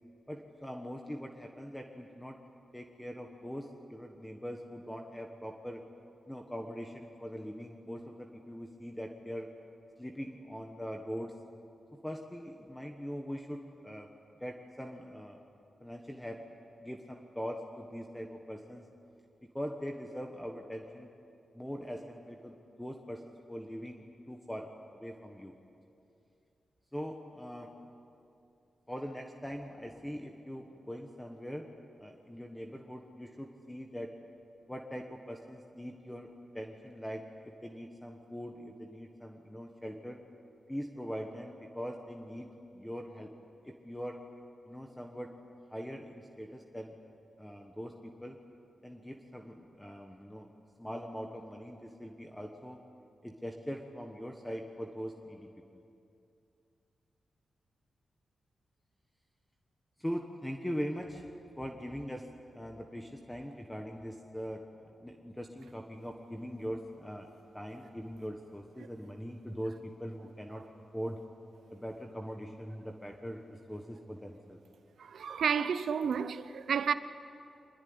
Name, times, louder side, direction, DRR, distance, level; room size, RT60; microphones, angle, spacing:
voice 1, 0.3-2.4 2.7-5.8 6.3-9.5 10.0-11.3 11.9-14.1 14.4-15.4 15.8-16.4 16.8-18.9 19.5-21.1 21.5-25.6 26.9-27.7 28.9-31.7 32.0-34.1 34.7-40.2 40.7-43.3 43.6-44.2 44.7-45.3 45.7-46.9 47.4-48.4 48.8-50.5 50.8-52.8 53.2-55.5 60.0-70.7 70.9-71.2 71.7-74.6, equal, 5° left, 1.3 m, -42 dB
voice 2, 75.0-76.9, right 7 dB, 75° right, 0.7 m, -31 dB
25.0 x 21.0 x 9.7 m
wide cardioid pair, 150°, 0 cm